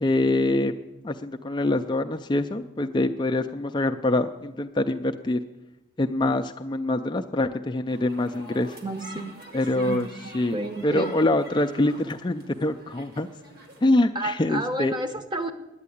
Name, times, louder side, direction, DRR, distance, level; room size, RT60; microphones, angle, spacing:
voice 1, 0.0-0.8 1.0-5.4 6.0-8.8 9.5-10.1 10.3-10.6 10.8-13.3 13.8-14.9, left 2 dB, 25° left, 6 dB, 0.4 m, -24 dB
sound 1, 7.9-14.1, right 1 dB, 50° right, 1.7 m, -46 dB
voice 2, 8.8-11.1 14.1-15.5, right 2 dB, 25° right, 7 dB, 0.9 m, -32 dB
9.5 x 9.1 x 9.8 m, 1.0 s
head